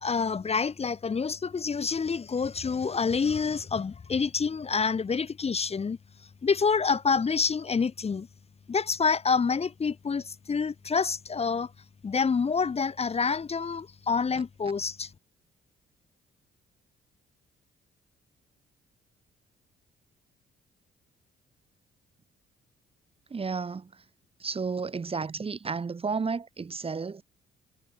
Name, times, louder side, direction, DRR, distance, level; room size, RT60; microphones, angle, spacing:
voice 1, 0.0-6.0 6.4-8.3 8.7-11.7 12.0-15.1, left 5 dB, 30° left, 1.0 m, -27 dB
voice 2, 23.3-23.9 24.4-27.2, right 5 dB, 30° right, 1.1 m, -32 dB
cardioid pair, 90°, 20 cm